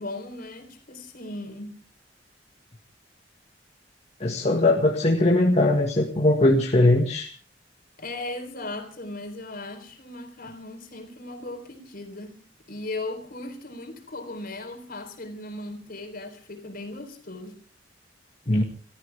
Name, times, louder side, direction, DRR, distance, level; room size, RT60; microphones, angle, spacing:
voice 1, 0.0-1.8 8.0-12.4 12.7-17.6, left 2 dB, 55° left, 4.0 m, -37 dB
voice 2, 4.2-7.3 18.5-18.6, left 2 dB, 40° left, 1.8 m, -20 dB
28.5 x 14.0 x 3.5 m
head